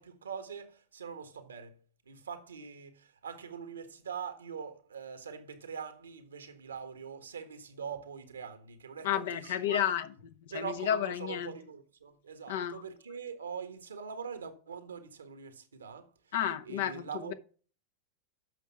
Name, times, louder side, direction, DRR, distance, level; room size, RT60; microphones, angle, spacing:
voice 1, 0.0-1.8 2.1-9.8 10.5-16.1 16.6-17.3, right 6 dB, 90° right, 1.5 m, -43 dB
voice 2, 9.0-11.5 12.5-12.8 16.3-17.3, left 10 dB, 70° left, 1.1 m, -32 dB
8.2 x 6.0 x 5.8 m
hypercardioid pair, 100°, 0 cm